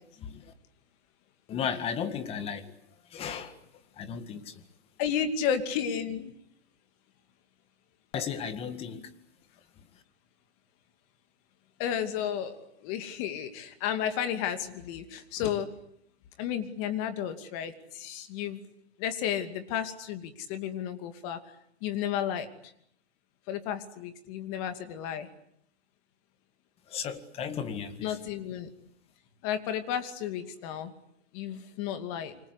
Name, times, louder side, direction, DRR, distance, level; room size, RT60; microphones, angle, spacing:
voice 1, 0.2-0.5 1.5-2.7 3.1-3.6 4.0-4.6 8.1-9.1 26.9-28.2, left 7 dB, 20° left, 10 dB, 2.0 m, -35 dB
voice 2, 5.0-6.3 11.8-15.7 16.4-18.6 19.0-21.4 21.8-22.5 23.5-25.3 28.0-28.7 29.4-30.9 31.3-32.4, left 9 dB, 35° left, 8 dB, 2.6 m, -32 dB
28.0 x 25.0 x 8.3 m, 0.72 s
hypercardioid pair, 150°, 33 cm